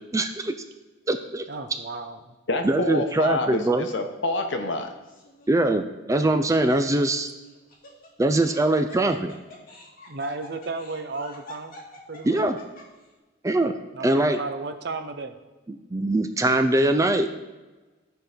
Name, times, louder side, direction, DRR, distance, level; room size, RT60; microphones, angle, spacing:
voice 1, 0.1-0.5 1.1-1.4 2.6-3.9 5.5-7.3 8.2-9.3 12.2-12.6 13.4-13.7 14.0-14.4 15.7-17.3, right 2 dB, 15° right, 8 dB, 0.4 m, -22 dB
voice 2, 1.5-2.3 10.1-11.8 12.1-12.4 13.9-15.4, right 3 dB, 55° right, 8 dB, 0.7 m, -34 dB
voice 3, 2.5-4.9, left 2 dB, 65° left, 5 dB, 1.0 m, -27 dB
Laughter, 5.0-5.5 6.1-6.2 7.5-13.1, left 2 dB, 45° left, 2.0 m, -46 dB
13.0 x 4.7 x 5.0 m, 1.2 s
head